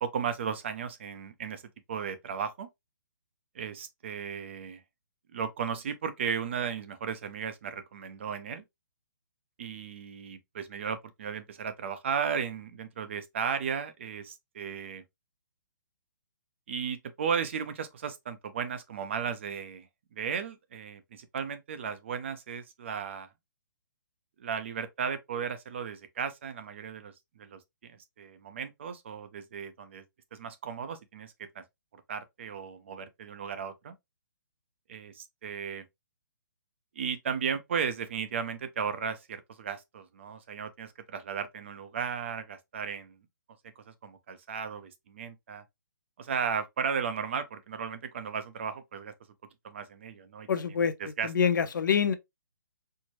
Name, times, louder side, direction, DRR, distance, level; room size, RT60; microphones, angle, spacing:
voice 1, 0.0-1.6 1.9-2.7 3.5-4.8 5.3-8.6 9.6-15.0 16.7-23.3 24.4-30.0 30.3-31.6 32.1-34.0 34.9-35.9 37.0-43.2 43.8-45.6 46.2-49.1 49.6-50.5 51.0-51.3, right 7 dB, 35° right, 0.5 m, -35 dB
voice 2, 50.5-50.9 51.2-52.1, left 7 dB, 65° left, 0.6 m, -25 dB
4.4 x 2.0 x 2.9 m
hypercardioid pair, 165°, 11 cm